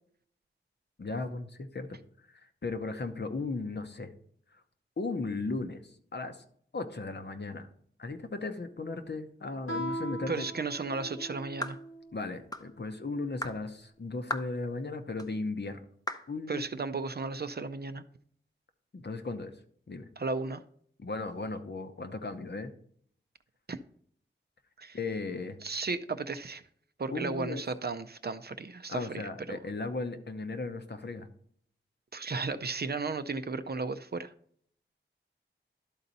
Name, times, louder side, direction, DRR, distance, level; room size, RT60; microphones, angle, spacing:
voice 1, 1.0-2.0 2.3-4.1 4.5-4.6 5.0-6.4 6.7-7.7 8.0-10.5 12.1-15.8 16.3-16.7 18.9-19.6 19.9-20.1 21.0-22.7 24.9-25.6 27.1-27.6 28.9-31.3, left 3 dB, 55° left, 0.8 m, -36 dB
Guitar, 9.6-12.1, right 1 dB, 90° left, 1.8 m, -39 dB
voice 2, 10.3-11.8 16.5-18.0 20.2-20.6 23.7-23.8 24.8-25.0 25.6-26.6 27.0-29.2 29.5-29.6 32.1-34.3, right 4 dB, 50° right, 0.5 m, -34 dB
sound 1, 11.6-11.8 12.5-12.7 13.4-13.6 14.3-14.5 15.2-15.3 16.1-16.3, left 1 dB, 20° left, 0.6 m, -36 dB
12.0 x 4.0 x 4.1 m
wide cardioid pair, 50°, 21 cm